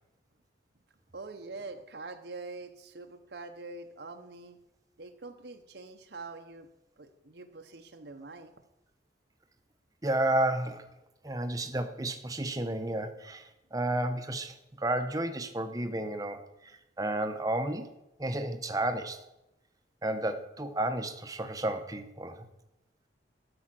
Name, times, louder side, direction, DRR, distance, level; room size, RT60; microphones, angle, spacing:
voice 1, 1.1-4.6 5.0-6.7 7.0-8.5, right 3 dB, 65° right, 6 dB, 0.9 m, -44 dB
voice 2, 10.0-10.8 11.2-16.7 17.0-17.9 18.2-19.2 20.0-22.5, right 1 dB, 20° right, 7 dB, 0.9 m, -32 dB
12.5 x 5.7 x 7.6 m, 0.92 s
head